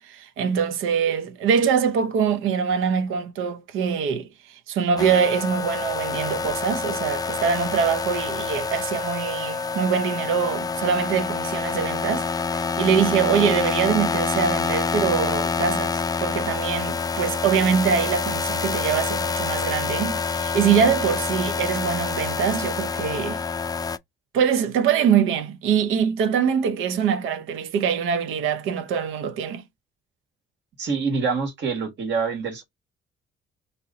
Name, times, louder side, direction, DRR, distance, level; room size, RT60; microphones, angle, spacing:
voice 1, 0.0-4.3 4.7-12.3 12.8-23.4 24.3-29.6, right 7 dB, 90° right, 0.6 m, -23 dB
sound 1, 5.0-24.0, left 5 dB, 20° left, 0.3 m, -27 dB
voice 2, 30.8-32.6, right 5 dB, 65° right, 1.8 m, -26 dB
2.9 x 2.8 x 3.9 m
cardioid pair, 90°, 20 cm